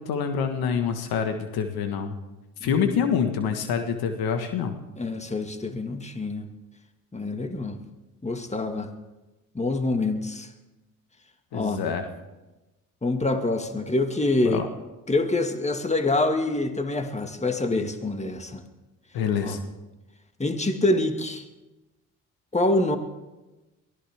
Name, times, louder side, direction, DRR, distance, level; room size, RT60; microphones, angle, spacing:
voice 1, 0.0-2.1 2.6-4.8 11.5-12.0 14.4-14.7 19.1-19.6, left 7 dB, 75° left, 7 dB, 1.6 m, -26 dB
voice 2, 5.0-6.5 7.1-7.8 8.2-8.9 9.6-10.5 11.5-11.8 13.0-14.6 15.1-18.6 19.4-19.6 20.4-21.4 22.5-23.0, left 2 dB, 20° left, 6 dB, 2.0 m, -26 dB
23.0 x 16.5 x 3.6 m, 1.1 s
supercardioid pair, 55°, 37 cm